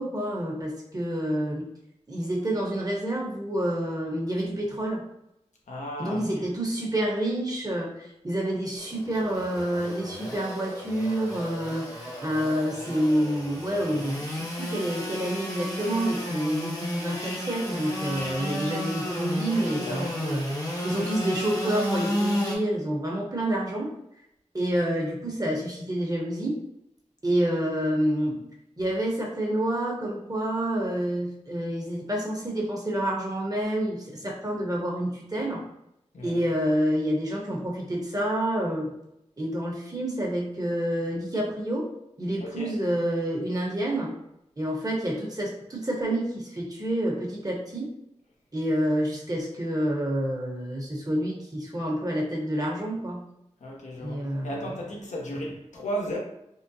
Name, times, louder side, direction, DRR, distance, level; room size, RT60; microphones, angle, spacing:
voice 1, 0.0-1.6 2.1-5.0 6.0-23.9 24.5-26.6 27.2-28.4 28.8-35.6 36.2-38.9 39.4-41.9 42.2-44.1 44.6-47.9 48.5-53.2 54.0-54.7 55.3-55.4, right 1 dB, 30° right, 0.9 m, -28 dB
voice 2, 5.7-6.4 19.8-20.1 36.1-36.4 42.4-42.7 53.6-56.2, equal, 90° left, 0.7 m, -35 dB
Engine / Sawing, 8.8-22.6, left 1 dB, 30° left, 0.8 m, -33 dB
3.7 x 2.1 x 2.6 m
wide cardioid pair, 55°, 12 cm